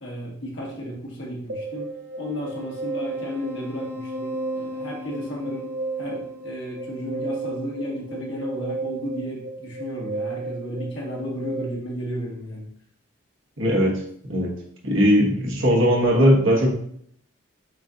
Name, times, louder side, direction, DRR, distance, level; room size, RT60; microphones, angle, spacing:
voice 1, 0.0-5.7 6.0-12.7, equal, 65° left, -3 dB, 1.5 m, -33 dB
sound 1, 1.5-11.6, right 2 dB, 60° right, 1.1 m, -33 dB
voice 2, 13.6-14.5 14.8-16.7, equal, 80° right, -2 dB, 1.4 m, -19 dB
7.4 x 2.5 x 2.8 m, 0.66 s
head